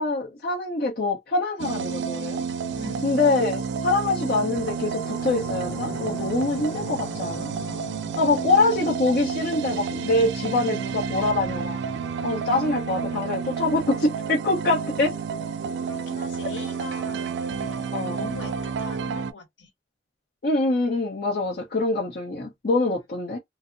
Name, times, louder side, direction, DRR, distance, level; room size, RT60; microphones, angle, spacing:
voice 1, 0.0-2.4 3.0-7.5 8.2-11.8 12.2-15.1 17.9-18.2 20.4-23.4, left 2 dB, 55° left, 0.7 m, -24 dB
sound 1, 1.6-19.3, right 6 dB, 65° right, 0.3 m, -30 dB
voice 2, 2.8-3.1 12.5-13.2 15.8-19.7, left 3 dB, 75° left, 1.0 m, -42 dB
sound 2, 4.1-14.7 15.1-15.2, left 2 dB, 15° left, 0.5 m, -43 dB
2.6 x 2.0 x 2.4 m
head